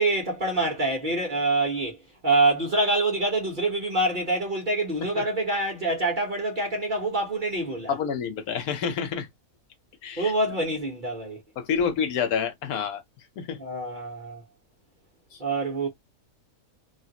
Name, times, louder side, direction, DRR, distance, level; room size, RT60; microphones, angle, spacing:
voice 1, 0.0-2.0 2.2-7.9 10.2-11.4 11.8-11.9 13.6-14.4 15.4-15.9, right 2 dB, 40° right, 1.1 m, -26 dB
voice 2, 7.9-9.3 10.0-10.3 11.6-13.0 13.4-13.6, left 7 dB, 90° left, 1.3 m, -28 dB
3.0 x 2.5 x 2.8 m
omnidirectional pair, 1.5 m